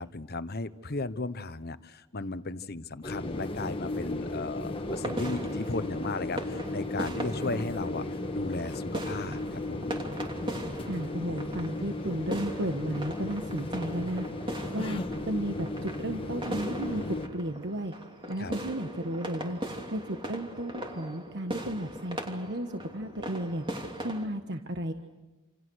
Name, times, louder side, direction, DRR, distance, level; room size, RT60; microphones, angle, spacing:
voice 1, 0.0-8.0 8.3-9.9 16.9-17.1 18.4-18.5, left 3 dB, 50° left, 12 dB, 1.1 m, -36 dB
sound 1, 3.0-17.3, left 2 dB, 25° left, 1.6 m, -35 dB
sound 2, 4.9-24.3, right 1 dB, 25° right, 3.0 m, -39 dB
voice 2, 10.9-17.9 18.3-19.6 19.9-23.6 24.0-24.9, right 1 dB, 55° right, 5 dB, 1.4 m, -34 dB
29.0 x 28.0 x 6.4 m, 1.1 s
head